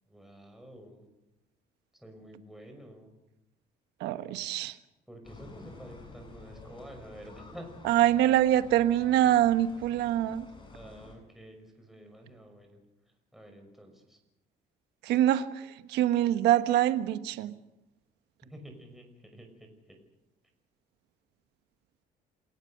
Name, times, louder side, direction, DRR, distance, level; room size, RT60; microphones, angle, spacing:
voice 1, 0.1-1.1 1.9-3.1 5.1-7.8 10.7-14.2 18.4-20.0, equal, ahead, 3 dB, 5.9 m, -49 dB
voice 2, 4.0-4.8 7.8-10.5 15.0-17.5, right 12 dB, 85° right, 11 dB, 1.3 m, -25 dB
sound 1, 5.2-11.2, left 3 dB, 30° left, 6.9 m, -50 dB
28.0 x 17.5 x 6.6 m, 0.94 s
cardioid pair, 110°, 17 cm